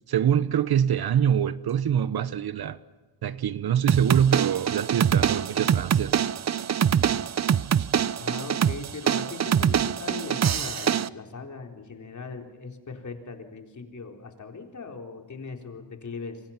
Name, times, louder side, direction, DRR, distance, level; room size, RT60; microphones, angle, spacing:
voice 1, 0.1-2.8 3.2-6.2 7.8-7.9, right 9 dB, 60° right, 1.1 m, -24 dB
sound 1, 3.9-11.1, right 8 dB, 40° right, 0.7 m, -24 dB
voice 2, 8.2-16.4, left 4 dB, 45° left, 4.0 m, -39 dB
28.0 x 26.0 x 5.9 m
cardioid pair, 105°, 43 cm